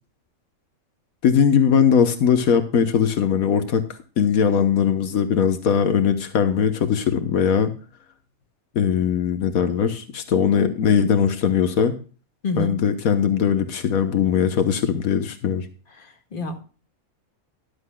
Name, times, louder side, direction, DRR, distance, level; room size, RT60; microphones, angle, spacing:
voice 1, 1.2-3.8 4.2-7.7 8.7-11.9 12.5-15.7, left 7 dB, 85° left, 8 dB, 1.4 m, -20 dB
voice 2, 12.4-12.8 16.0-16.6, left 2 dB, 35° left, 3 dB, 2.0 m, -28 dB
13.5 x 11.5 x 2.2 m, 0.38 s
omnidirectional pair, 1.5 m